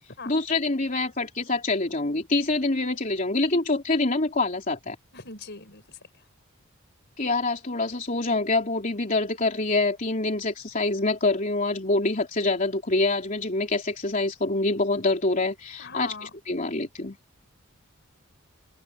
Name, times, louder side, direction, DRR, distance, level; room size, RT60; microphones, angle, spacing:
voice 1, 0.3-4.9 7.2-16.1 16.5-17.2, left 2 dB, 40° left, 3.3 m, -25 dB
voice 2, 5.1-6.2 15.8-16.3, left 4 dB, 55° left, 5.1 m, -40 dB
open air
head